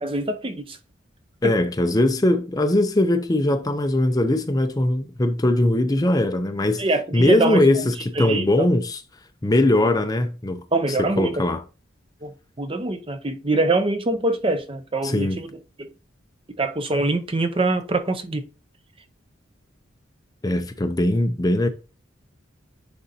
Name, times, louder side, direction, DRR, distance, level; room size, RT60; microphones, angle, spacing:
voice 1, 0.0-0.8 1.4-1.6 6.8-7.7 8.2-8.7 10.7-11.4 12.2-15.5 15.8-15.9 16.6-18.4, right 2 dB, 25° right, 0.6 m, -24 dB
voice 2, 1.4-6.8 7.1-9.0 9.4-10.6 11.0-11.6 15.0-15.4 20.4-21.7, left 1 dB, 20° left, 0.6 m, -20 dB
10.0 x 3.9 x 2.8 m
head